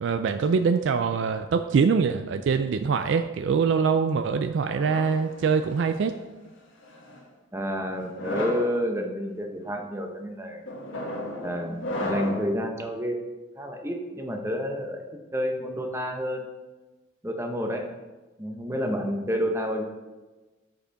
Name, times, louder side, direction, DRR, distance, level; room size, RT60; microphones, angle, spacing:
voice 1, 0.0-6.2, right 5 dB, 60° right, 9 dB, 0.3 m, -24 dB
sound 1, 4.6-6.0 6.8-7.2 8.0-8.7 9.4-9.7 10.7-12.5, left 1 dB, 65° left, 1.6 m, -34 dB
voice 2, 7.5-10.6 11.4-13.3 13.6-15.0 15.3-16.5 17.2-17.9 18.4-19.8, equal, 15° right, 3 dB, 0.8 m, -29 dB
6.6 x 5.4 x 5.7 m, 1.2 s
head